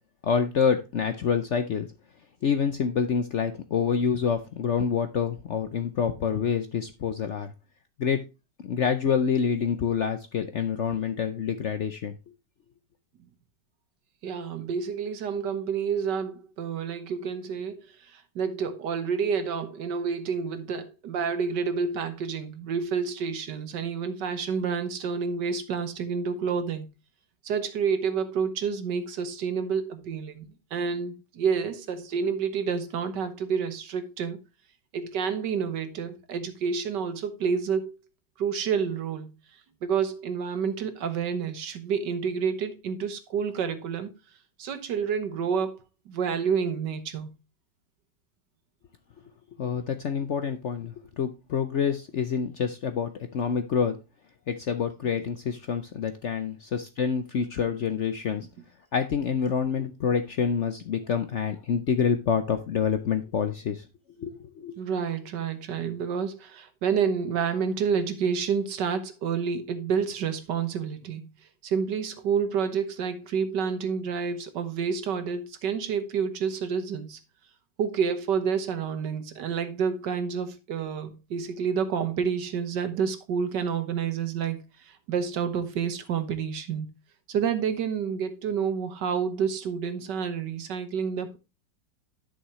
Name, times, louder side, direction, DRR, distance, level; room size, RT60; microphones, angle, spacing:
voice 1, 0.2-1.9 2.4-7.5 8.0-8.2 8.6-12.2 49.6-54.0 54.5-58.5 58.9-63.9 64.2-64.7, left 6 dB, 60° left, 0.8 m, -27 dB
voice 2, 14.2-26.9 27.4-34.4 34.9-38.0 38.4-39.4 39.8-44.1 44.6-45.8 46.1-47.3 64.8-71.3 71.6-77.2 77.8-86.9 87.3-91.4, right 6 dB, 75° right, 1.7 m, -29 dB
11.0 x 6.4 x 3.0 m
omnidirectional pair, 1.9 m